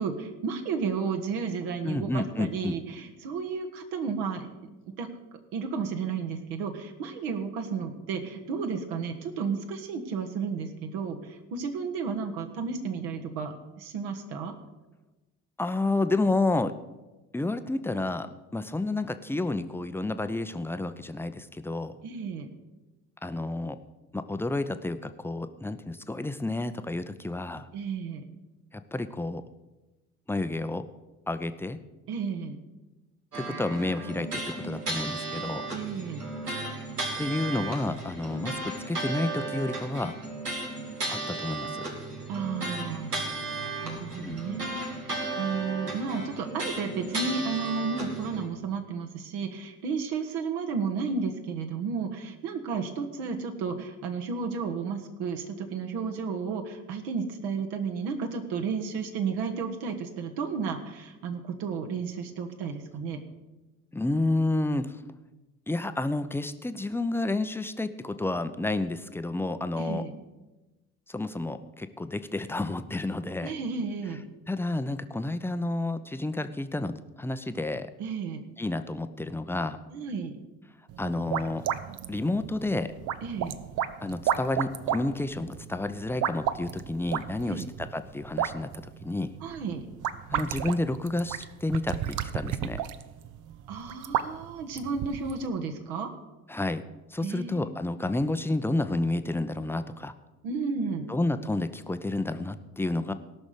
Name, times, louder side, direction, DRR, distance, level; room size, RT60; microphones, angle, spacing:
voice 1, 0.0-4.5 5.0-5.1 5.5-14.5 22.0-22.5 27.7-28.2 32.1-32.6 35.7-36.2 42.3-43.1 43.8-63.2 69.8-70.1 73.4-74.2 78.0-78.4 79.9-80.4 83.2-83.6 87.4-87.7 89.4-89.9 93.7-96.1 97.2-97.7 100.4-101.1, right 5 dB, 60° right, 4 dB, 1.6 m, -32 dB
voice 2, 1.8-2.8 15.6-16.7 17.3-22.0 23.2-23.8 24.1-27.7 28.7-29.4 30.3-30.9 31.3-31.8 33.3-35.7 37.2-40.1 41.1-41.8 44.2-44.4 63.9-65.0 65.7-70.0 71.1-73.5 74.5-77.9 78.6-79.8 81.0-81.7 82.1-82.9 84.0-89.3 90.3-92.8 96.5-96.8 97.1-100.1 101.1-103.1, left 2 dB, 5° left, 10 dB, 0.7 m, -30 dB
sound 1, 33.3-48.5, right 2 dB, 90° right, 1.6 m, -35 dB
sound 2, 80.9-95.5, right 10 dB, 45° right, 0.7 m, -34 dB
17.5 x 6.3 x 6.8 m, 1.1 s
figure-of-eight pair, 50°, 45 cm